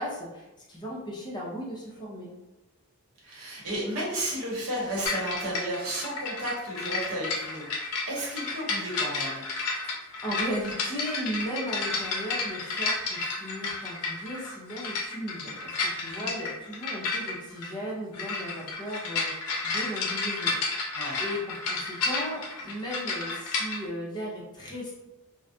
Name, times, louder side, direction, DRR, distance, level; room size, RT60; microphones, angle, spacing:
voice 1, 0.0-2.3 9.7-9.9 10.2-20.8 21.2-24.9, equal, 20° left, -4 dB, 0.6 m, -36 dB
voice 2, 3.2-9.5 16.0-16.3 20.9-21.2, right 1 dB, 65° right, -5 dB, 0.9 m, -33 dB
sound 1, 5.1-23.8, left 3 dB, 80° left, 0.5 m, -32 dB
2.3 x 2.0 x 2.6 m, 1.0 s
head